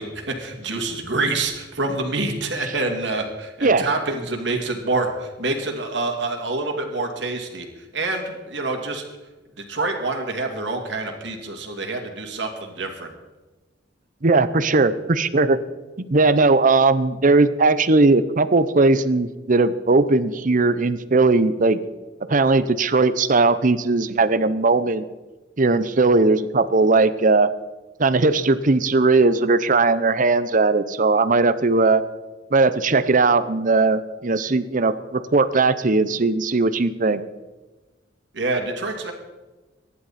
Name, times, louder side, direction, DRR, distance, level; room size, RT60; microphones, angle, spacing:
voice 1, 0.0-7.7 7.9-9.0 9.6-13.1 38.3-39.1, right 2 dB, 70° right, 3 dB, 2.4 m, -26 dB
voice 2, 14.2-15.6 16.1-21.8 22.3-25.0 25.6-27.5 28.0-32.0 32.5-37.2, right 3 dB, 45° right, 13 dB, 0.8 m, -18 dB
24.0 x 11.0 x 4.2 m, 1.2 s
head